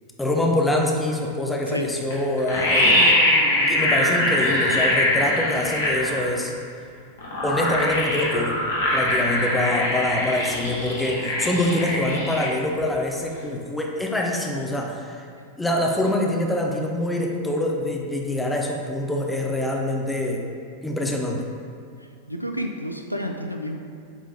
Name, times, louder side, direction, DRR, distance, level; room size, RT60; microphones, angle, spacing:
voice 1, 0.2-3.2 3.7-6.5 7.4-8.6 8.9-15.2 15.6-20.5 20.8-21.5, left 1 dB, 5° left, 0 dB, 0.7 m, -25 dB
sound 1, 2.1-2.2 2.4-6.3 7.2-12.5 12.8-12.9, left 1 dB, 65° left, 1.5 m, -22 dB
voice 2, 22.3-23.8, equal, 90° left, 4 dB, 0.4 m, -29 dB
7.3 x 3.6 x 3.6 m, 2.5 s
figure-of-eight pair, 90°, 0 cm